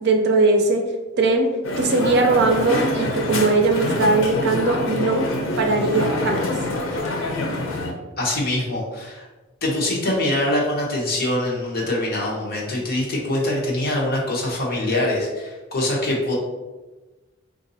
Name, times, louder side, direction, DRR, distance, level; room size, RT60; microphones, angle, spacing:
voice 1, 0.0-0.9 1.2-5.3 5.6-6.5, right 3 dB, 60° right, 3 dB, 0.5 m, -20 dB
Crowd, 1.6-7.9, left 2 dB, 90° left, 0.6 m, -25 dB
voice 2, 8.2-9.3 9.6-16.4, left 1 dB, 50° left, -3 dB, 0.9 m, -24 dB
3.9 x 2.5 x 2.7 m, 1.2 s
head